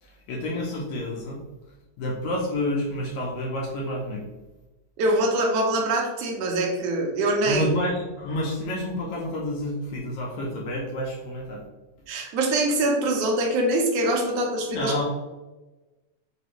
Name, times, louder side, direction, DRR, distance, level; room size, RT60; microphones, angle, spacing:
voice 1, 0.0-1.4 2.0-4.3 7.5-11.6 14.7-15.0, left 1 dB, 80° left, -2 dB, 1.8 m, -29 dB
voice 2, 5.0-7.7 12.1-14.9, right 1 dB, 75° right, 0 dB, 1.5 m, -24 dB
5.1 x 2.4 x 2.9 m, 1.1 s
omnidirectional pair, 3.6 m